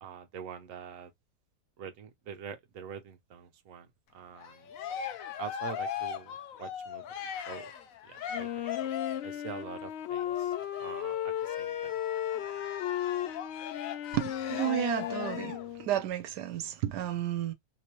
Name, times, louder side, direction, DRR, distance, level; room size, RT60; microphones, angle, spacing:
voice 1, 0.0-1.1 1.8-4.7 5.4-7.0 7.5-7.7 8.0-8.5 9.2-12.0, right 7 dB, 60° right, 1.1 m, -45 dB
Cheering, 4.3-9.4 10.1-15.7, left 9 dB, 65° left, 1.0 m, -39 dB
Wind instrument woodwind instrument, 8.3-16.0, left 11 dB, 80° left, 0.5 m, -35 dB
voice 2, 14.1-17.5, right 12 dB, 90° right, 1.2 m, -32 dB
3.6 x 3.0 x 3.0 m
omnidirectional pair, 1.7 m